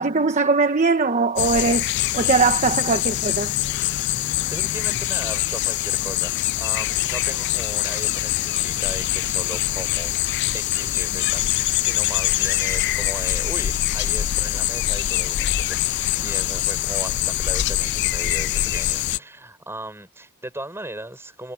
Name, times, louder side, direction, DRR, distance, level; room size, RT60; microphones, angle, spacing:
voice 1, 0.0-3.5, right 4 dB, 35° right, 1.1 m, -21 dB
sound 1, 1.4-19.2, left 14 dB, 50° left, 0.3 m, -24 dB
voice 2, 4.5-10.2 10.5-21.5, right 1 dB, 10° right, 6.4 m, -37 dB
head